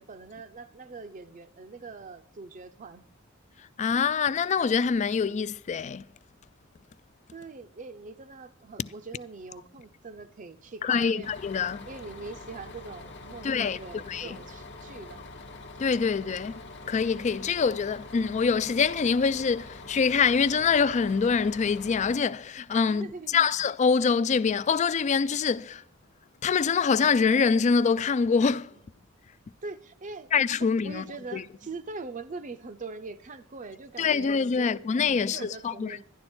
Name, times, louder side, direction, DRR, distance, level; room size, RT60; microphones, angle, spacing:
voice 1, 0.0-3.0 7.3-11.3 11.8-15.3 22.8-23.5 29.6-36.0, right 3 dB, 40° right, 0.6 m, -42 dB
voice 2, 3.8-6.0 10.8-11.9 13.4-13.8 14.1-14.4 15.8-16.6 16.9-23.1 23.3-25.8 26.4-28.7 30.3-31.0 31.3-31.4 34.0-36.0, left 5 dB, 35° left, 0.3 m, -25 dB
Bus, 11.2-22.2, left 2 dB, 60° left, 1.0 m, -45 dB
12.0 x 10.5 x 4.4 m
head